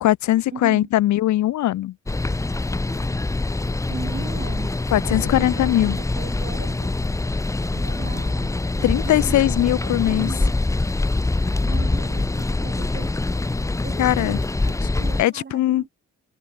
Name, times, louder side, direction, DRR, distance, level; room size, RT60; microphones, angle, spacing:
voice 1, 0.0-1.9 4.9-6.0 8.8-10.3 14.0-14.4 15.2-15.8, left 14 dB, 70° left, 0.8 m, -20 dB
voice 2, 0.5-0.9 3.9-6.9 7.7-9.4 9.8-10.5 11.6-13.1 13.8-15.9, right 6 dB, 35° right, 2.6 m, -38 dB
sound 1, 2.1-15.2, left 2 dB, 10° left, 0.7 m, -24 dB
cardioid pair, 90°, 30 cm